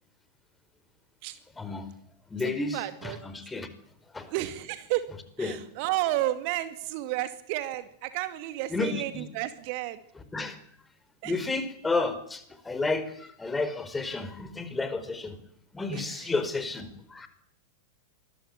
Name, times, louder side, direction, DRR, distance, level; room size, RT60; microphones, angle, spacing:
voice 1, 1.6-1.9 2.3-3.7 4.1-4.3 5.4-5.6 8.7-9.2 10.3-10.6 11.2-15.4 15.7-17.3, left 3 dB, 10° left, 11 dB, 4.8 m, -31 dB
voice 2, 2.4-3.2 4.3-5.1 5.4-10.0 11.2-11.4 15.9-16.3, right 15 dB, 45° right, 11 dB, 2.3 m, -32 dB
25.5 x 22.0 x 9.0 m, 0.65 s
figure-of-eight pair, 90°, 0 cm